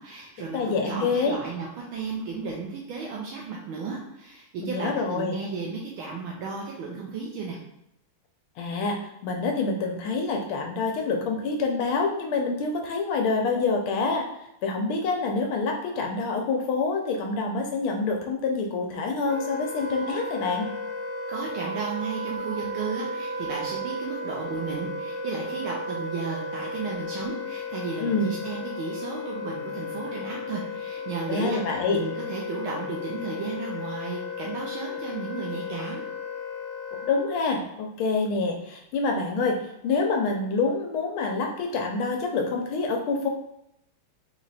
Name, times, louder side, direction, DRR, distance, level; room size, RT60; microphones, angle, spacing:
voice 1, 0.0-7.6 21.3-36.1, right 4 dB, 75° right, -2 dB, 1.5 m, -34 dB
voice 2, 0.5-1.4 4.6-5.4 8.6-14.2 14.6-20.7 28.0-28.3 31.3-32.0 37.1-43.3, left 4 dB, 80° left, 2 dB, 1.4 m, -26 dB
Wind instrument woodwind instrument, 19.2-37.4, left 2 dB, 60° right, 1.4 m, -34 dB
4.2 x 3.1 x 4.0 m, 0.82 s
omnidirectional pair, 2.4 m